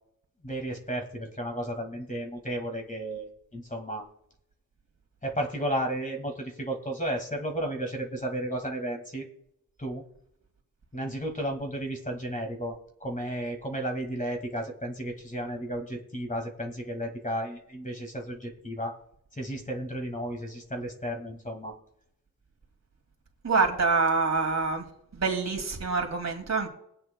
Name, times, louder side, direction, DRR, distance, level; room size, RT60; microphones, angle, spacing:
voice 1, 0.4-4.1 5.2-9.3 9.8-10.0 10.9-19.0 19.4-21.7, right 1 dB, 20° left, 3 dB, 1.9 m, -33 dB
voice 2, 23.4-24.9 25.1-26.7, right 4 dB, 45° right, 3 dB, 2.4 m, -26 dB
20.5 x 9.0 x 2.2 m, 0.74 s
wide cardioid pair, 95°, 38 cm